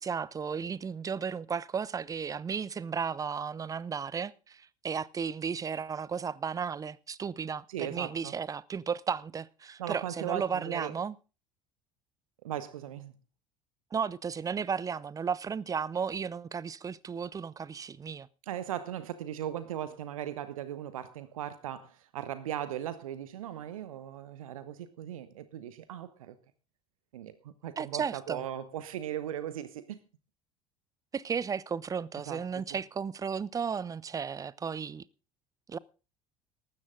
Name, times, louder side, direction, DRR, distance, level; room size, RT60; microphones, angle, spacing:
voice 1, 0.0-11.1 13.9-18.3 27.8-28.4 31.1-35.0 35.7-35.8, right 6 dB, 20° right, 0.5 m, -34 dB
voice 2, 7.7-8.3 9.8-10.9 12.4-13.1 18.5-26.3 27.1-30.0 32.3-32.4, right 11 dB, 70° right, 1.0 m, -38 dB
15.0 x 12.5 x 3.8 m
figure-of-eight pair, 65°, 19 cm